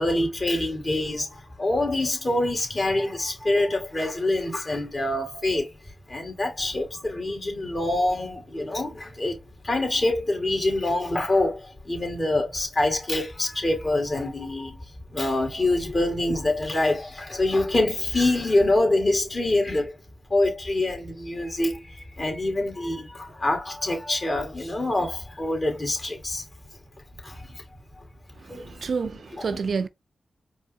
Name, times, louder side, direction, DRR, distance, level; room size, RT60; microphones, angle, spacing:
voice 1, 0.0-5.7 6.1-9.4 9.6-20.0 20.3-26.4 27.2-27.6 28.0-28.1 28.5-28.9 29.3-29.6, left 2 dB, 50° left, 2.1 m, -25 dB
voice 2, 28.6-29.9, right 5 dB, 70° right, 0.4 m, -28 dB
4.6 x 3.1 x 2.6 m
supercardioid pair, 40°, 0 cm